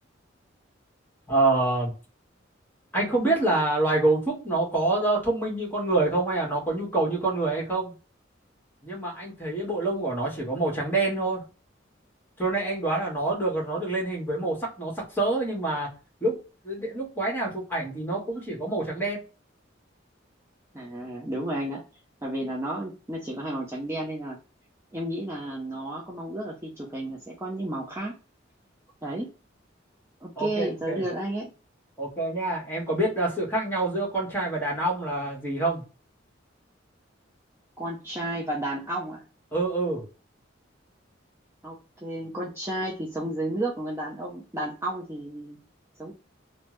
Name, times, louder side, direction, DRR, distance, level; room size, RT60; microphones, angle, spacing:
voice 1, 1.3-1.9 2.9-7.9 8.8-11.4 12.4-15.9 16.2-16.4 16.6-19.2 30.4-31.0 32.0-35.8 39.5-40.0, right 2 dB, 10° left, -3 dB, 1.3 m, -26 dB
voice 2, 20.7-21.8 22.2-24.4 24.9-28.1 29.0-29.3 30.2-31.5 37.8-39.2 41.6-45.6 46.0-46.1, right 1 dB, 15° right, -4 dB, 0.5 m, -32 dB
3.2 x 2.0 x 3.0 m, 0.33 s
head